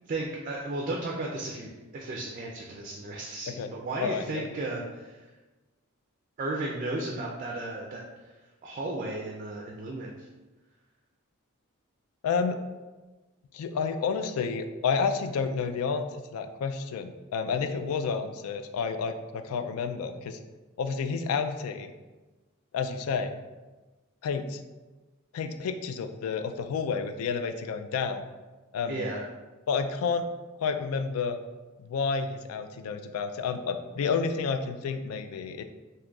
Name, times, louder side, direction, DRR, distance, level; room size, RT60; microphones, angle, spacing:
voice 1, 0.1-5.3 6.4-8.0 8.6-10.3 28.9-29.2, right 2 dB, 40° right, -1 dB, 0.3 m, -34 dB
voice 2, 4.0-4.4 12.2-12.6 13.5-20.4 20.8-21.9 22.7-23.3 24.2-24.6 25.3-28.2 28.7-29.1 29.7-30.3 30.6-31.4 31.8-35.6, left 5 dB, 90° left, 12 dB, 0.3 m, -30 dB
2.7 x 2.3 x 3.8 m, 1.2 s
head